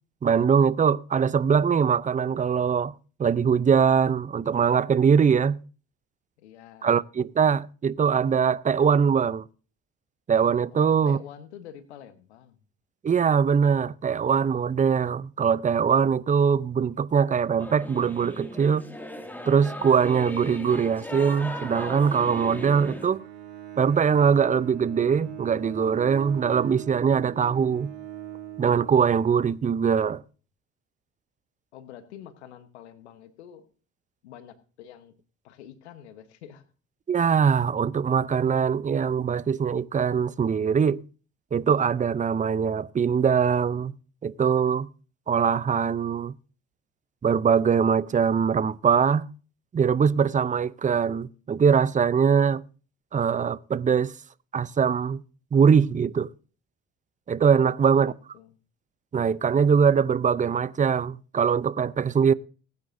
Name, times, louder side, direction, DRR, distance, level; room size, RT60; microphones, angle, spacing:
voice 1, 0.2-2.9 3.2-5.6 6.8-9.4 10.3-11.2 13.0-18.9 19.5-23.2 23.8-27.9 28.6-30.2 37.1-41.0 41.5-43.9 44.2-44.9 45.3-46.3 47.2-49.3 49.7-52.6 53.1-54.1 54.5-55.2 55.5-56.3 57.3-58.1 59.1-62.3, right 6 dB, 25° right, 0.6 m, -22 dB
voice 2, 6.4-6.9 10.7-12.6 31.7-33.7 34.2-35.1 35.4-36.6 57.6-58.6, left 10 dB, 85° left, 1.2 m, -47 dB
Singing / Musical instrument, 17.6-23.1, left 1 dB, 5° left, 2.3 m, -37 dB
Bowed string instrument, 21.6-29.8, right 12 dB, 85° right, 5.2 m, -41 dB
20.0 x 9.5 x 2.7 m
hypercardioid pair, 60°, 33 cm